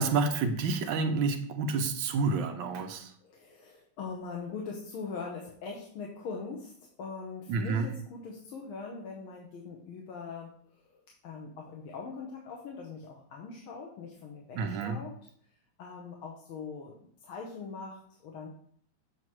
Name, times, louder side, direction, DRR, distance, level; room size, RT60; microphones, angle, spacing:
voice 1, 0.0-3.1 7.5-7.9 14.5-15.0, right 4 dB, 75° right, 6 dB, 1.4 m, -29 dB
voice 2, 3.2-6.7 7.0-10.8 11.2-15.1 15.8-18.5, left 4 dB, 85° left, 0 dB, 1.8 m, -41 dB
7.7 x 2.9 x 6.1 m, 0.62 s
omnidirectional pair, 2.3 m